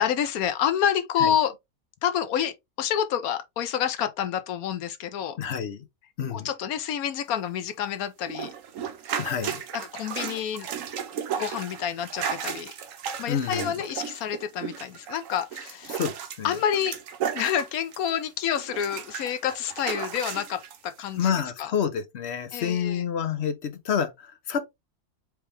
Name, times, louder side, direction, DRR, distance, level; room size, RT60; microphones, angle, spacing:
voice 1, 0.0-1.5 2.0-5.4 6.3-8.5 9.7-10.7 11.4-12.7 13.2-16.0 16.4-17.0 17.3-21.3 21.6-21.7 22.5-23.0, left 9 dB, 80° left, 1.1 m, -28 dB
voice 2, 5.4-5.8 6.2-6.5 9.2-9.6 13.3-13.8 15.9-16.6 21.2-24.6, left 7 dB, 55° left, 0.9 m, -28 dB
sound 1, 8.3-18.2 18.6-20.8 21.3-21.4, right 8 dB, 70° right, 1.1 m, -34 dB
4.6 x 3.1 x 3.2 m
omnidirectional pair, 1.5 m